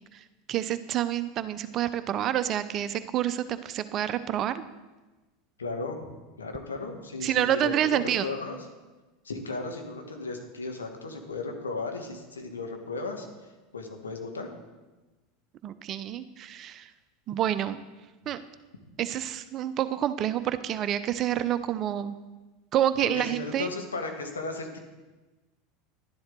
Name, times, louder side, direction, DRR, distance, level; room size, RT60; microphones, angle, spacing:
voice 1, 0.0-4.6 7.2-8.3 15.6-16.9 17.3-17.8 18.3-18.4 19.0-22.2 22.7-23.7, right 11 dB, 40° right, 12 dB, 0.7 m, -28 dB
voice 2, 5.6-6.0 6.4-8.6 9.2-13.3 13.7-14.5 23.1-24.8, left 3 dB, 85° left, 4 dB, 1.4 m, -35 dB
11.5 x 10.5 x 3.8 m, 1.2 s
hypercardioid pair, 85°, 0 cm